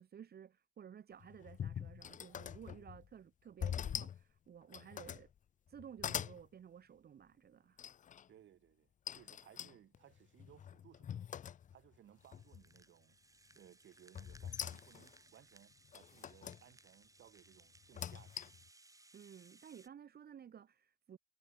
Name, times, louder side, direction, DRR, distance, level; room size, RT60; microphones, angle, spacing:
voice 1, 0.0-5.3 5.7-7.8 19.1-21.2, right 8 dB, 50° right, 1.7 m, -55 dB
sound 1, 1.2-3.1 3.6-4.2 4.6-5.3 5.7-6.4 7.8-8.3 9.1-12.0 12.3-12.8 14.1-15.2 15.9-16.6 17.8-18.7, left 9 dB, 40° left, 0.5 m, -44 dB
voice 2, 8.3-11.3 11.7-13.2 13.6-18.5, right 11 dB, 70° right, 7.5 m, -63 dB
Rattle (instrument), 12.2-19.9, right 2 dB, 15° right, 2.8 m, -65 dB
cardioid pair, 90°, 20 cm